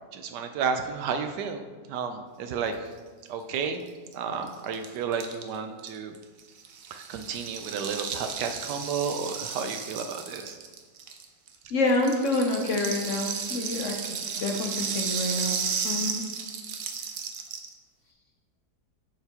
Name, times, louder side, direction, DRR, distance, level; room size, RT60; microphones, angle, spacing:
voice 1, 0.1-2.9 3.3-3.8 4.1-6.2 6.9-10.6, right 6 dB, 80° right, 7 dB, 1.2 m, -32 dB
Rattle (instrument), 3.9-4.0 4.1-4.2 4.4-11.6 11.9-17.7, right 6 dB, 65° right, 0.9 m, -34 dB
voice 2, 11.7-15.6 15.8-16.2, left 2 dB, 60° left, 1 dB, 0.9 m, -27 dB
7.9 x 6.7 x 2.9 m, 1.5 s
omnidirectional pair, 1.8 m